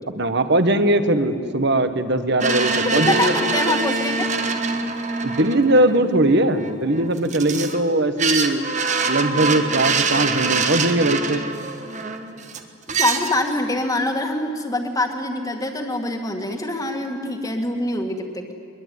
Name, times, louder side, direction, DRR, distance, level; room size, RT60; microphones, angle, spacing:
voice 1, 0.1-3.8 5.2-8.6 9.1-11.4, right 1 dB, 50° right, 10 dB, 1.4 m, -20 dB
sound 1, 2.4-7.8 8.2-12.6 12.9-13.4, right 4 dB, 35° right, 1.5 m, -24 dB
voice 2, 2.8-4.3 13.0-18.5, left 2 dB, 15° left, 4 dB, 2.1 m, -25 dB
22.5 x 22.0 x 9.5 m, 2.4 s
head